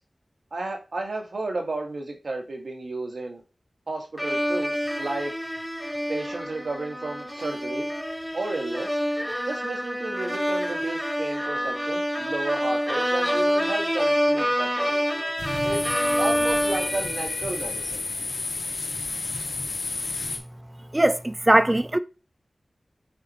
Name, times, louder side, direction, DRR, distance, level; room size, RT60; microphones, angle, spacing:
voice 1, 0.5-3.4 3.9-5.3 6.1-7.9 8.3-9.0 9.5-14.9 15.6-18.0, right 2 dB, 75° right, 1.6 m, -32 dB
sound 1, 4.2-17.9, equal, 5° right, 0.8 m, -27 dB
sound 2, 15.4-20.4, left 3 dB, 90° left, 1.2 m, -31 dB
voice 2, 20.9-22.0, right 1 dB, 25° right, 0.5 m, -20 dB
6.2 x 4.1 x 4.2 m
wide cardioid pair, 55°, 0 cm